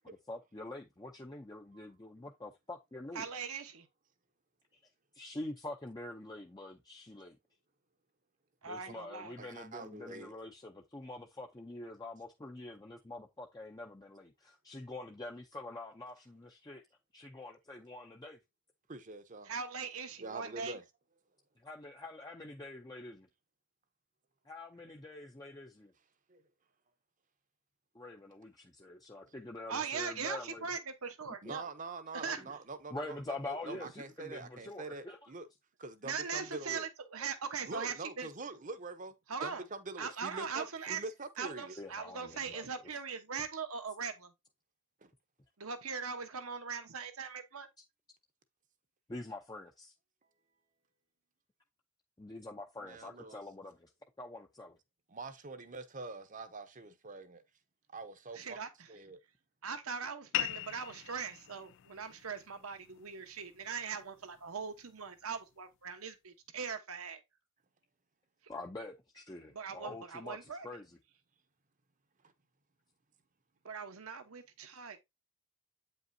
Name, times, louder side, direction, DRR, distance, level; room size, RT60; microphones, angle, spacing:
voice 1, 0.3-3.3 5.1-7.4 8.7-16.8 17.1-18.4 21.6-23.3 24.4-25.9 27.9-30.7 32.4-32.5 32.9-35.3 37.2-37.3 41.8-42.7 49.1-49.9 52.2-53.9 54.2-54.8 68.5-71.0, left 2 dB, 15° left, 0.6 m, -46 dB
voice 2, 3.1-3.9 8.6-9.3 19.4-20.8 29.7-31.6 32.1-32.4 36.0-38.3 39.3-39.7 40.0-44.3 45.6-47.7 58.3-59.0 59.6-67.2 69.5-70.8 73.6-75.0, right 5 dB, 75° right, 1.1 m, -40 dB
voice 3, 9.4-10.3 18.9-19.5 20.2-20.8 26.3-26.4 31.4-35.5 35.8-36.8 37.6-39.1 39.4-41.7 45.0-45.1 52.8-53.4 55.1-57.4 57.9-58.6 58.9-59.2 69.9-70.0, right 3 dB, 35° right, 0.8 m, -45 dB
sound 1, 60.3-65.4, left 15 dB, 55° left, 0.3 m, -42 dB
8.5 x 5.3 x 2.7 m
head